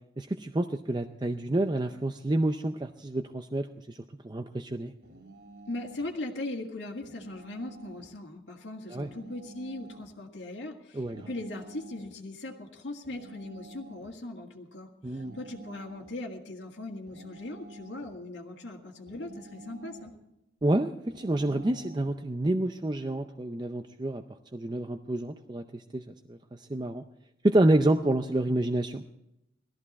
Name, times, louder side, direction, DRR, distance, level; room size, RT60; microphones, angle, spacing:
voice 1, 0.2-4.0 4.2-4.9 8.9-9.1 10.9-11.3 15.0-15.4 20.6-24.2 24.5-27.0 27.4-29.0, right 1 dB, 25° right, 6 dB, 0.5 m, -28 dB
sound 1, 5.0-6.1 7.0-8.2 9.0-10.2 11.0-12.1 13.0-14.2 15.1-16.2 17.1-18.2 19.1-20.2 21.1-22.2, right 2 dB, 80° right, 2.6 m, -50 dB
voice 2, 5.7-20.1, left 2 dB, 85° left, -1 dB, 1.9 m, -39 dB
18.0 x 13.5 x 4.2 m, 0.87 s
head